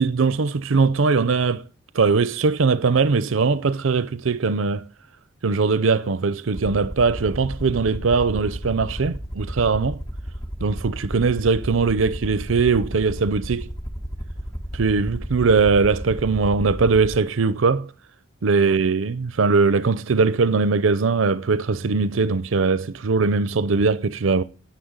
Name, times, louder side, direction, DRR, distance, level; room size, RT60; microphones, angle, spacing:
voice 1, 0.0-1.6 1.9-4.8 5.4-10.0 10.6-13.7 14.7-17.9 18.4-24.4, right 4 dB, 80° right, 0.6 m, -20 dB
Aircraft, 6.5-17.2, equal, 20° left, 1.5 m, -33 dB
10.0 x 9.4 x 9.5 m
head